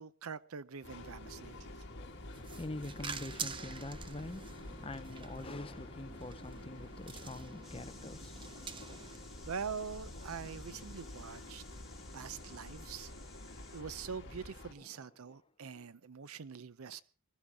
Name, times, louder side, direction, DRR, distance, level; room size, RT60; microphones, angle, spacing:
voice 1, 0.0-1.9 9.5-11.6 12.1-13.1 13.7-17.0, right 6 dB, 85° right, 0.6 m, -44 dB
Train, 0.8-14.7, left 1 dB, 55° left, 2.2 m, -49 dB
sound 1, 2.3-9.2, right 5 dB, 25° right, 0.7 m, -47 dB
voice 2, 2.5-8.4 14.8-15.4 15.7-15.9 16.9-17.0, left 2 dB, 25° left, 0.8 m, -45 dB
sound 2, 7.6-13.8, left 3 dB, ahead, 3.3 m, -58 dB
21.0 x 14.5 x 3.6 m
head